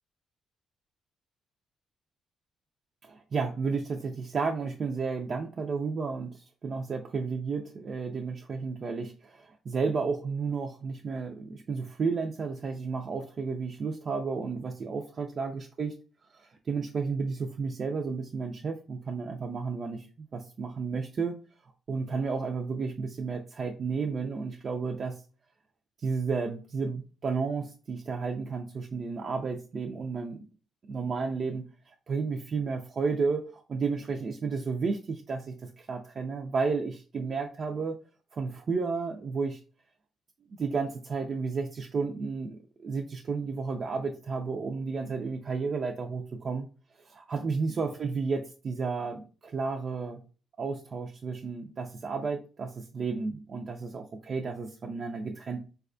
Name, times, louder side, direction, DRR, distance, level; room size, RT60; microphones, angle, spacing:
voice 1, 3.0-16.0 16.3-21.4 21.6-25.2 26.0-30.4 30.9-37.9 38.3-39.6 40.5-46.7 47.0-50.2 50.6-55.6, right 4 dB, 45° right, 2 dB, 0.4 m, -32 dB
4.0 x 2.2 x 2.5 m, 0.36 s
cardioid pair, 90°, 0 cm